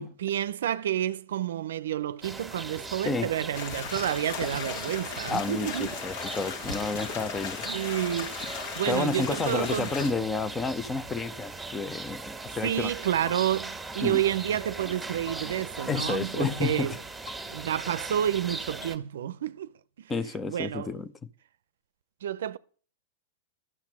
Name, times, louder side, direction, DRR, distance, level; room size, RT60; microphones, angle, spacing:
voice 1, 0.0-6.0 7.7-8.4 8.8-9.9 12.6-17.0 17.5-19.7 20.0-20.1 20.5-20.9 22.2-22.6, right 11 dB, 75° right, 0.5 m, -29 dB
sound 1, 2.2-19.0, right 3 dB, 5° right, 1.8 m, -39 dB
sound 2, 3.5-10.1, left 6 dB, 60° left, 1.8 m, -37 dB
voice 2, 5.3-7.7 8.9-12.9 14.0-14.2 15.9-17.0 20.1-21.3, left 4 dB, 15° left, 0.7 m, -30 dB
sound 3, 13.2-13.4 15.2-15.4 17.2-17.4 18.8-18.9, left 5 dB, 75° left, 2.2 m, -44 dB
12.5 x 5.8 x 7.4 m
hypercardioid pair, 125°, 0 cm